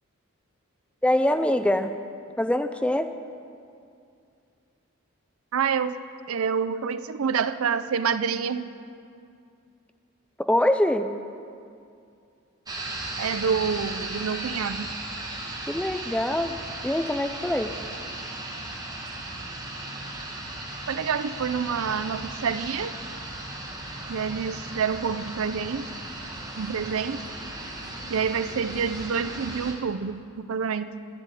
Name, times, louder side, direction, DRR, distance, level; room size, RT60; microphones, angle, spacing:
voice 1, 1.0-1.9 2.4-3.1 10.4-11.1 15.7-16.6 16.8-17.7, left 1 dB, 5° left, 9 dB, 0.4 m, -24 dB
voice 2, 5.5-6.0 6.3-8.7 13.2-14.9 20.9-22.9 24.1-25.9 26.6-27.2 28.1-31.0, right 6 dB, 80° right, 13 dB, 0.5 m, -27 dB
sound 1, 12.7-29.7, right 2 dB, 20° right, 1.3 m, -36 dB
10.5 x 7.7 x 9.7 m, 2.4 s
head